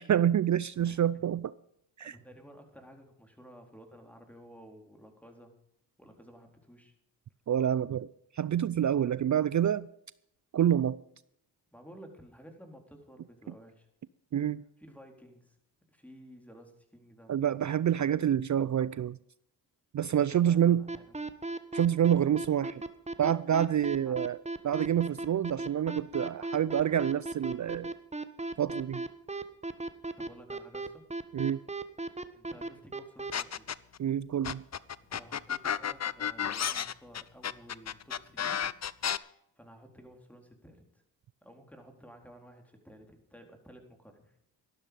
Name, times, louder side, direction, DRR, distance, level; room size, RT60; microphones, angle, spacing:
voice 1, 0.0-1.5 2.0-2.1 7.5-9.9 10.5-11.0 14.3-14.6 17.3-19.2 19.9-20.9 21.7-22.8 23.2-24.4 24.6-27.9 28.6-29.1 31.3-31.6 34.0-34.6, right 10 dB, 40° right, 0.5 m, -27 dB
voice 2, 0.8-1.2 2.0-5.5 6.0-6.9 11.7-13.9 14.8-15.6 15.9-17.4 20.3-21.2 24.0-24.2 30.2-31.1 32.3-33.7 35.1-38.6 39.6-41.0 41.4-44.4, equal, 5° left, 4.1 m, -53 dB
sound 1, 20.9-33.3, right 2 dB, 15° right, 1.3 m, -36 dB
sound 2, 33.3-34.0 34.4-39.2, left 8 dB, 35° left, 0.6 m, -32 dB
13.5 x 12.0 x 5.3 m
supercardioid pair, 50°, 49 cm